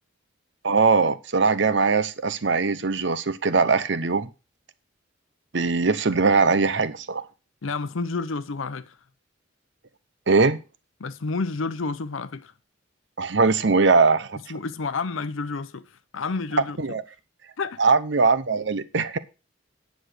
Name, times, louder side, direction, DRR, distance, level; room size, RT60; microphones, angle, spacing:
voice 1, 0.6-4.3 5.5-7.2 10.3-10.6 13.2-14.4 16.8-17.0 17.8-19.2, right 4 dB, 60° right, 0.8 m, -21 dB
voice 2, 7.6-9.0 11.0-12.5 14.5-16.8 17.6-17.8, left 4 dB, 75° left, 0.6 m, -30 dB
10.0 x 6.3 x 6.5 m
head